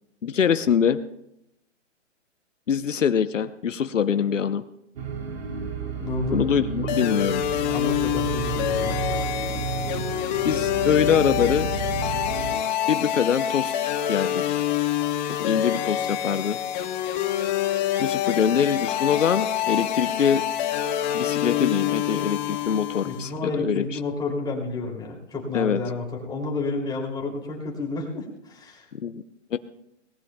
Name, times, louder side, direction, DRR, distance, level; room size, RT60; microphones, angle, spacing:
voice 1, 0.2-1.0 2.7-4.6 6.3-7.4 10.4-11.7 12.9-13.8 14.1-14.4 15.4-16.6 18.0-20.4 21.1-23.8 25.5-25.8 29.0-29.2 29.5-29.6, left 7 dB, 90° left, 11 dB, 0.8 m, -23 dB
sound 1, 5.0-12.5, right 7 dB, 55° right, 2.4 m, -31 dB
voice 2, 6.0-6.4 7.6-9.3 23.0-28.9, left 3 dB, 10° left, -2 dB, 2.8 m, -30 dB
sound 2, 6.9-23.3, left 11 dB, 35° left, 1.1 m, -26 dB
20.5 x 18.5 x 2.3 m, 0.82 s
hypercardioid pair, 135°, 37 cm